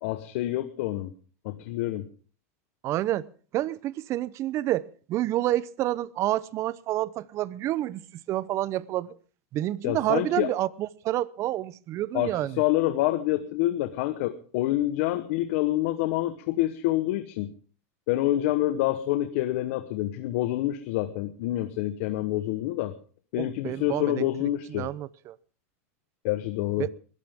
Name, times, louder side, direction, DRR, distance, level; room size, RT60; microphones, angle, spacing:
voice 1, 0.0-1.1 1.4-2.1 9.8-10.5 12.1-17.5 18.1-22.9 23.3-24.9 26.2-26.9, left 15 dB, 60° left, 1.1 m, -27 dB
voice 2, 2.8-3.3 3.5-8.0 8.3-9.1 9.5-12.6 23.4-25.4 26.8-26.9, right 14 dB, 40° right, 0.7 m, -29 dB
21.5 x 14.5 x 3.6 m
supercardioid pair, 130°, 8 cm